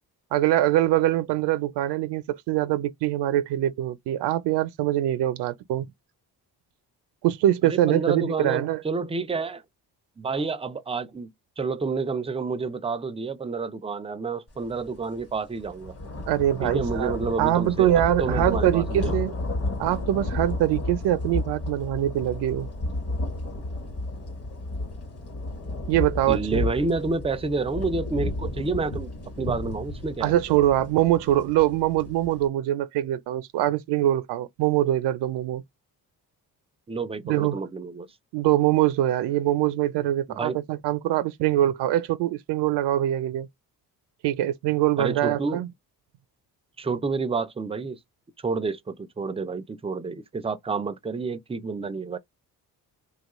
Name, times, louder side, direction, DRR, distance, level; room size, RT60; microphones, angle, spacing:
voice 1, 0.3-5.9 7.2-8.8 16.3-19.3 19.8-22.7 25.9-26.7 30.2-35.6 37.3-37.6 38.3-43.5 44.2-45.7, right 13 dB, 80° right, 0.5 m, -23 dB
voice 2, 7.6-9.6 10.2-11.3 11.6-16.0 16.6-19.2 26.3-29.1 29.4-30.3 36.9-38.1 40.3-40.6 45.0-45.6 46.8-48.0 48.4-52.2, right 4 dB, 15° right, 0.4 m, -29 dB
sound 1, 14.7-14.8 15.2-32.5, left 2 dB, 35° left, 1.1 m, -32 dB
2.9 x 2.3 x 2.9 m
cardioid pair, 75°, 40 cm